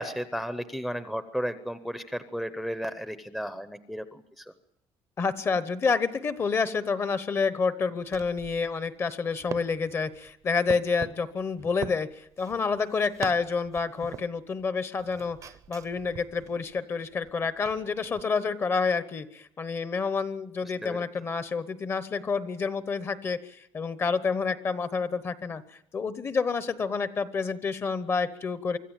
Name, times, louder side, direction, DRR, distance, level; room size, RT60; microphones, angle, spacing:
voice 1, 0.0-4.4 20.8-21.0, equal, ahead, 11 dB, 0.8 m, -34 dB
voice 2, 5.2-15.4 15.7-25.6 25.9-28.8, left 5 dB, 25° left, 14 dB, 1.0 m, -28 dB
sound 1, 8.0-14.7 15.0-18.2, right 8 dB, 35° right, 0.8 m, -44 dB
25.0 x 14.0 x 8.9 m, 0.76 s
cardioid pair, 170°, 9 cm